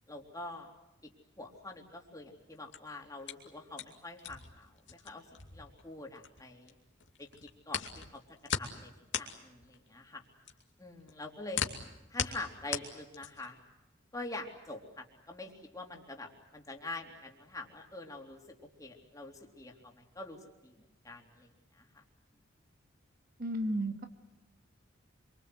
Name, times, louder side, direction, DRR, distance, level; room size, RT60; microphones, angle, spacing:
voice 1, 0.1-0.7 1.0-1.1 1.4-5.3 5.5-6.7 7.2-7.3 7.7-10.2 10.8-11.6 12.1-13.6 14.1-18.4 18.8-20.8 21.0-22.0, left 2 dB, 20° left, 1 dB, 3.6 m, -45 dB
sound 1, 2.5-6.7 7.0-13.6, left 7 dB, 65° left, 2.6 m, -38 dB
voice 2, 23.4-24.0, right 1 dB, 50° right, 5 dB, 2.1 m, -33 dB
27.0 x 24.5 x 8.0 m, 0.95 s
head